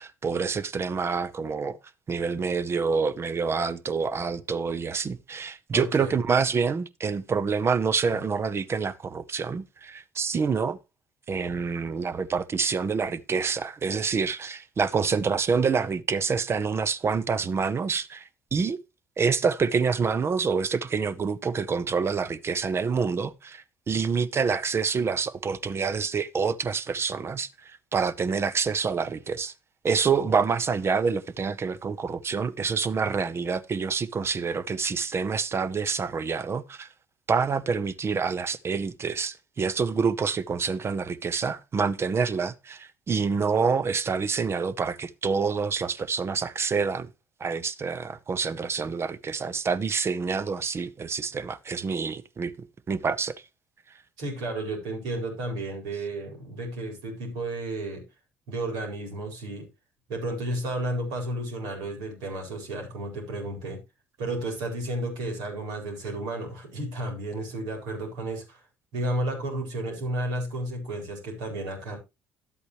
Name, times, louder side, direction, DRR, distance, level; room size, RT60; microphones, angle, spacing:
voice 1, 0.0-1.8 2.1-10.8 11.3-18.2 18.5-18.8 19.2-27.5 27.9-29.5 29.8-36.9 37.3-47.1 47.4-52.5 52.9-53.3, right 5 dB, 40° right, 0.9 m, -27 dB
voice 2, 5.7-6.2 15.6-15.7 54.2-58.0 58.5-59.7 60.1-63.8 64.2-68.6 68.9-72.0, right 1 dB, 75° right, 4.2 m, -32 dB
11.5 x 8.2 x 3.1 m
hypercardioid pair, 60°, 7 cm